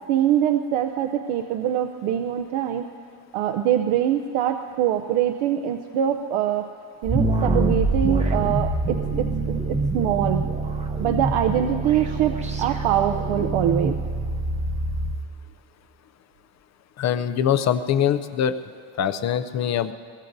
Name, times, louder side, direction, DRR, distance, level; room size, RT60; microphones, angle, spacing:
voice 1, 0.1-2.8 3.3-6.7 7.0-10.4 11.0-14.0, right 10 dB, 80° right, 5 dB, 0.7 m, -23 dB
sound 1, 7.0-15.2, right 2 dB, 15° right, 0.7 m, -25 dB
voice 2, 17.0-18.5 19.0-19.9, left 9 dB, 40° left, 11 dB, 0.4 m, -23 dB
23.0 x 20.5 x 2.6 m, 2.4 s
cardioid pair, 175°, 48 cm